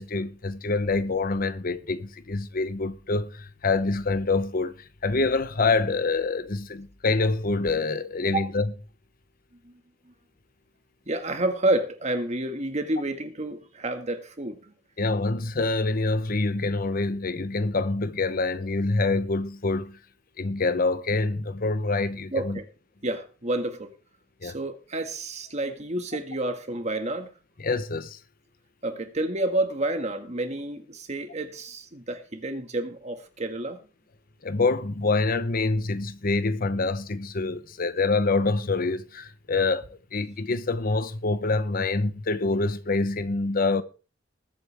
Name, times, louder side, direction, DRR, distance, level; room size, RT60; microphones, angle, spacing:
voice 1, 0.0-8.7 15.0-20.0 20.4-22.6 24.4-24.5 27.6-28.2 34.4-43.8, left 3 dB, 50° left, 0.8 m, -26 dB
voice 2, 11.1-14.7 22.3-22.6 23.0-23.9 24.4-27.3 28.8-33.8, right 2 dB, 40° right, 1.8 m, -29 dB
21.0 x 8.2 x 3.4 m
head